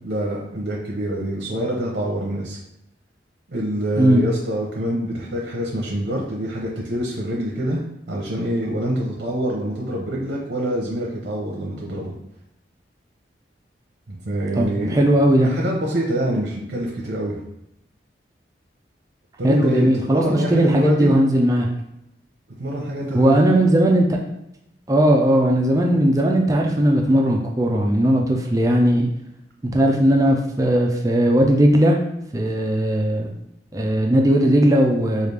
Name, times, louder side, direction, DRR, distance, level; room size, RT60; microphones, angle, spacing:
voice 1, 0.0-2.6 3.5-7.8 8.1-12.1 14.1-15.0 15.4-17.4 19.4-21.2 22.6-23.4, right 1 dB, 70° right, -3 dB, 0.8 m, -26 dB
voice 2, 14.5-15.5 19.4-21.7 23.1-24.2 24.9-29.1 29.7-32.0 32.3-33.3 33.7-35.3, right 1 dB, 20° right, 1 dB, 0.4 m, -17 dB
4.8 x 2.4 x 3.3 m, 0.81 s
head